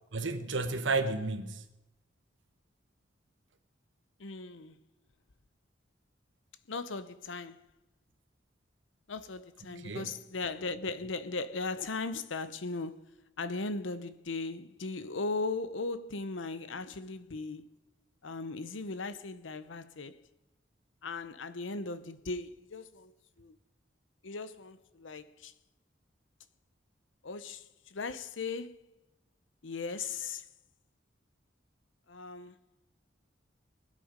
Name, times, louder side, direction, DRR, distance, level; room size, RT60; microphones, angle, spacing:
voice 1, 0.1-1.6 9.7-10.1, right 3 dB, 80° right, 1.2 m, -32 dB
voice 2, 4.2-4.8 6.7-7.6 9.1-17.7 18.2-20.2 21.0-23.1 23.4-23.6 24.2-25.5 27.2-28.8 29.6-30.4 32.1-32.6, left 3 dB, 85° left, 0.8 m, -38 dB
21.0 x 8.5 x 5.1 m
head